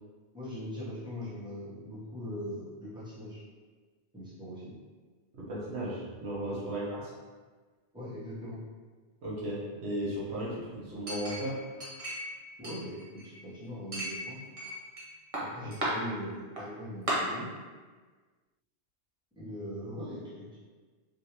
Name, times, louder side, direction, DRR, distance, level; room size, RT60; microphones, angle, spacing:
voice 1, 0.3-3.4 4.1-4.7 6.4-6.6 7.9-8.6 12.6-14.4 15.4-17.5 19.4-20.6, equal, 5° right, -11 dB, 1.0 m, -41 dB
voice 2, 5.3-7.1 9.2-11.6 15.6-15.7, right 1 dB, 80° right, -7 dB, 1.2 m, -35 dB
Chink clink, 11.1-12.3 12.6-13.4 13.9-15.0 15.3-15.9 16.6-16.7 17.1-17.2, right 1 dB, 35° right, 0.8 m, -35 dB
3.4 x 2.6 x 3.0 m, 1.4 s
omnidirectional pair, 1.1 m